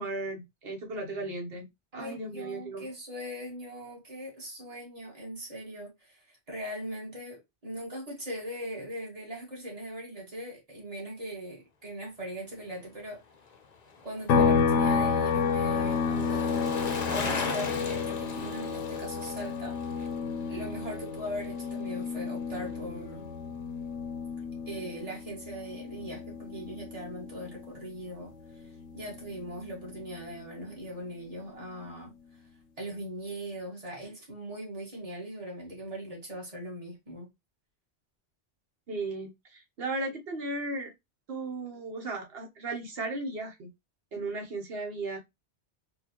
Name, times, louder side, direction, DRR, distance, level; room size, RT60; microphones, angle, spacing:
voice 1, 0.0-1.7 1.9-2.9 38.9-40.9 41.3-43.7 44.1-45.2, right 2 dB, 60° right, 1.2 m, -35 dB
voice 2, 1.9-13.2 14.0-16.7 17.0-20.1 20.5-23.3 24.7-28.6 28.9-32.1 32.8-37.3, equal, 30° right, 1.7 m, -40 dB
Bicycle, 13.3-21.8 22.1-22.2, left 5 dB, 45° left, 0.6 m, -39 dB
sound 1, 14.3-27.8 28.2-30.4, left 5 dB, 85° left, 0.9 m, -31 dB
4.5 x 2.3 x 2.9 m
omnidirectional pair, 1.2 m